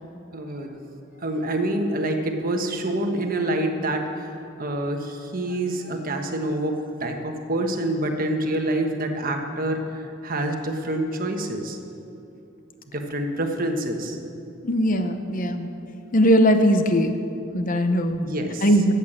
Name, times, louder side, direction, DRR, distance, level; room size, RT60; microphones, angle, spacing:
voice 1, 0.3-0.8 1.2-4.3 4.6-11.8 12.9-14.2 18.2-18.7, right 1 dB, 45° right, 4 dB, 1.3 m, -27 dB
voice 2, 14.6-15.7 16.1-17.2 17.5-18.2 18.6-18.9, equal, 40° left, 8 dB, 0.8 m, -19 dB
14.0 x 8.4 x 7.4 m, 2.9 s
head